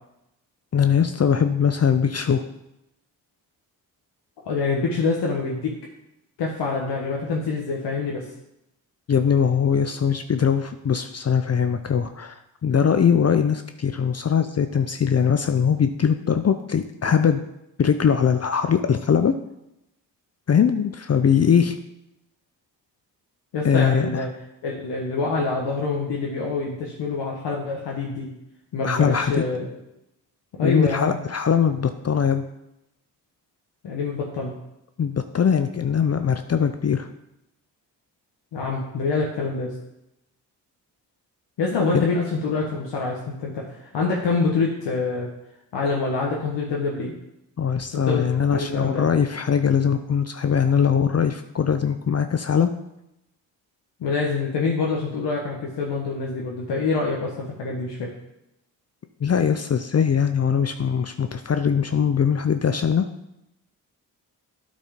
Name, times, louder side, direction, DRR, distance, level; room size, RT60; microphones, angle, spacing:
voice 1, 0.7-2.4 9.1-12.3 12.6-17.4 17.8-19.3 20.5-21.8 23.6-24.2 28.8-29.4 30.6-32.4 35.0-37.1 41.9-42.0 47.6-52.7 59.2-63.1, left 7 dB, 35° left, 8 dB, 0.6 m, -21 dB
voice 2, 4.4-5.7 6.4-8.3 23.5-24.3 24.6-28.3 28.7-29.7 30.6-31.2 33.8-34.5 38.5-39.7 41.6-45.3 45.7-47.1 47.9-49.0 54.0-58.1, left 4 dB, 75° left, -2 dB, 1.4 m, -26 dB
9.3 x 4.2 x 5.1 m, 0.85 s
supercardioid pair, 50°, 42 cm